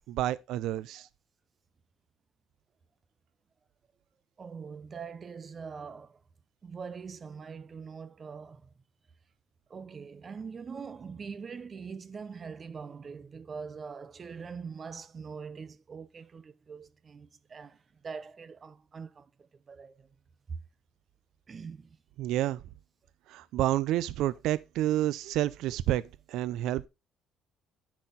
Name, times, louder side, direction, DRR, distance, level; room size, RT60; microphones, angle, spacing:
voice 1, 0.1-1.1 22.2-22.6 23.3-26.0 26.3-26.9, right 14 dB, 70° right, 0.4 m, -29 dB
voice 2, 4.4-6.2 6.6-8.6 9.7-17.8 18.0-19.3 19.7-20.1 21.5-22.0, right 5 dB, 30° right, 0.6 m, -43 dB
10.0 x 4.3 x 3.9 m
cardioid pair, 140°, 0 cm